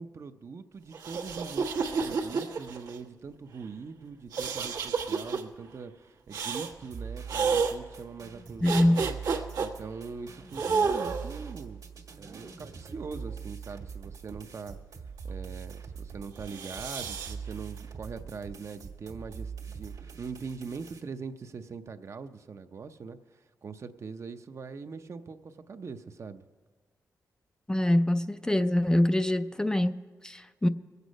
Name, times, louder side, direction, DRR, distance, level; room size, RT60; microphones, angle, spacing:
voice 1, 0.0-5.9 6.3-9.2 9.6-11.8 12.2-14.8 15.2-26.4, right 5 dB, 50° right, 0.6 m, -42 dB
sound 1, 0.9-3.0 4.3-5.4 6.3-6.7 7.3-7.7 8.6-9.7 10.5-11.4 12.2-13.3 16.4-17.3, right 5 dB, 90° right, 1.3 m, -30 dB
sound 2, 6.8-21.0, right 6 dB, 70° right, 1.7 m, -43 dB
voice 2, 8.6-9.0 27.7-30.7, left 1 dB, 10° left, 0.4 m, -25 dB
21.5 x 8.2 x 5.2 m
cardioid pair, 100°, 6 cm